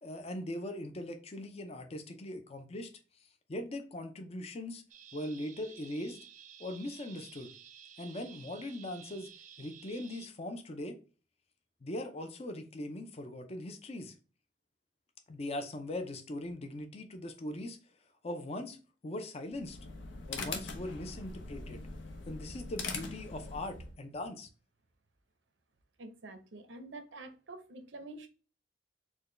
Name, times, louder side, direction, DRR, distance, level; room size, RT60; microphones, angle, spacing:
voice 1, 0.0-2.9 3.5-4.8 5.1-6.2 6.6-7.5 8.0-9.3 9.6-11.0 11.8-14.1 15.3-17.8 18.2-18.8 19.0-19.8 20.3-21.8 22.3-24.5, left 1 dB, 35° left, 0.5 m, -40 dB
sound 1, 4.9-10.3, right 8 dB, 45° right, 0.4 m, -53 dB
sound 2, 19.5-24.0, left 4 dB, 85° left, 0.7 m, -42 dB
voice 2, 26.0-28.3, right 2 dB, 80° right, 0.7 m, -47 dB
4.4 x 2.2 x 3.1 m
head